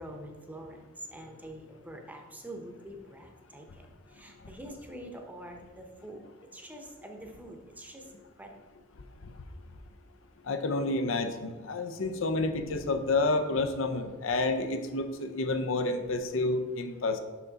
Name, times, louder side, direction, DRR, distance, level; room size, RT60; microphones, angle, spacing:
voice 1, 0.0-6.2 6.5-8.0 8.4-8.6, right 1 dB, 10° right, 3 dB, 0.7 m, -45 dB
voice 2, 10.5-17.2, left 2 dB, 70° left, 7 dB, 0.6 m, -29 dB
5.8 x 5.8 x 4.0 m, 1.3 s
head